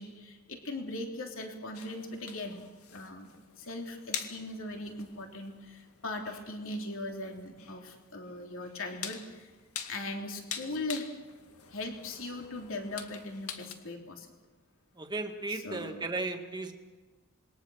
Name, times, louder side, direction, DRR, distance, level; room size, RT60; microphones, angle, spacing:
voice 1, 0.0-2.6 2.9-3.3 3.6-9.5 9.9-11.1 11.7-14.3 15.5-16.0, left 2 dB, 65° left, 2 dB, 3.4 m, -39 dB
sound 1, 1.7-13.7, left 7 dB, 90° left, 2.3 m, -45 dB
voice 2, 15.0-16.7, right 3 dB, 20° right, 4 dB, 2.0 m, -35 dB
27.5 x 22.0 x 6.4 m, 1.3 s
head